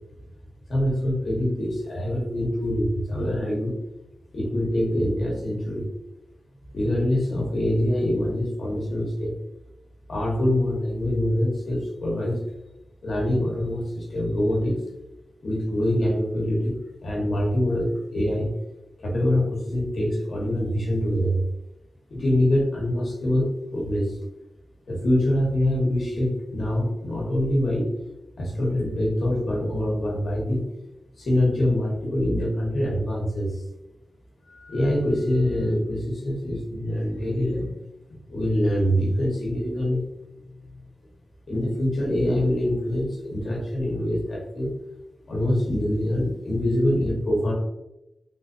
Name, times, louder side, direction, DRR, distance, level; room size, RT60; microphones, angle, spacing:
voice 1, 0.7-3.8 4.3-5.9 6.7-9.3 10.1-12.4 13.0-14.8 15.4-16.8 17.0-18.5 19.0-21.4 22.1-24.2 24.9-27.9 28.4-30.6 31.2-33.6 34.5-37.7 38.3-40.0 41.5-44.7 45.3-47.5, left 1 dB, 55° left, -2 dB, 1.1 m, -24 dB
3.5 x 3.1 x 2.7 m, 0.93 s
wide cardioid pair, 175°, 0 cm